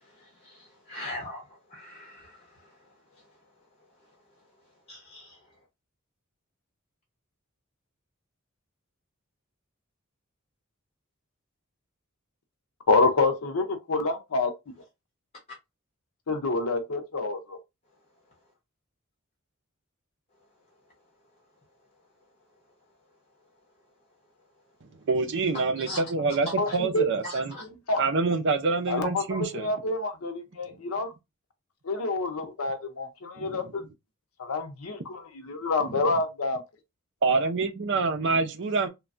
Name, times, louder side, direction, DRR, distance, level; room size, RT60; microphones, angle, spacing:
voice 1, 0.9-1.4 1.7-2.3 4.9-5.4 25.9-26.0 26.7-26.8 27.2-27.6, left 1 dB, 30° left, 1.0 m, -39 dB
voice 2, 12.9-14.5 16.3-17.6 26.6-27.1 27.6-28.0 28.9-31.1 31.8-33.8 34.4-36.6, left 3 dB, 85° left, 0.7 m, -27 dB
voice 3, 25.1-27.6 28.0-29.7 33.4-33.7 35.8-36.1 37.2-38.9, right 4 dB, 60° right, 0.6 m, -26 dB
3.3 x 2.2 x 2.5 m
head